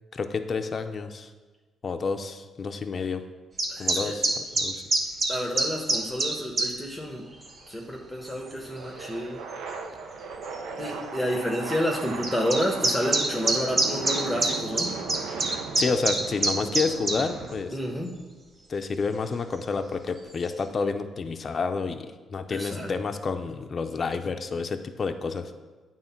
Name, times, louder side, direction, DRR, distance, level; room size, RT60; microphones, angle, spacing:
voice 1, 0.1-1.3 1.8-3.2 3.8-4.8 15.8-17.7 18.7-22.1 22.3-25.5, left 4 dB, 40° left, 7 dB, 0.5 m, -29 dB
sound 1, 3.6-6.7 7.4-7.6 8.5-8.6 9.7-9.8 10.1-10.2 10.4-10.5 12.2-17.2, right 2 dB, 35° right, 1.2 m, -24 dB
voice 2, 3.7-4.1 5.3-7.3 7.7-9.4 10.8-14.9 17.7-18.1 22.5-22.9, equal, 5° left, 0 dB, 1.1 m, -30 dB
sound 2, 7.2-17.6, right 4 dB, 85° right, 0.7 m, -38 dB
8.9 x 3.7 x 5.9 m, 1.3 s
cardioid pair, 90°, 0 cm